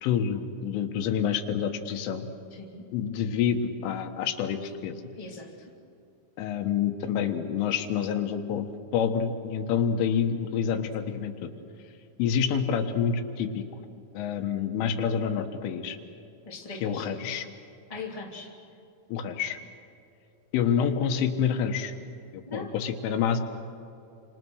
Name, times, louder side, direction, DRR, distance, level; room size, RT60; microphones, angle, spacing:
voice 1, 0.0-2.3 2.9-5.1 6.4-11.5 12.2-13.6 14.2-16.0 16.8-17.5 19.1-19.6 20.5-21.9 22.3-23.4, left 7 dB, 90° left, 6 dB, 3.9 m, -28 dB
voice 2, 5.1-5.5 16.4-17.1 17.9-18.5 22.5-22.7, left 3 dB, 10° left, -1 dB, 2.1 m, -40 dB
29.0 x 26.5 x 6.4 m, 2.6 s
omnidirectional pair, 5.4 m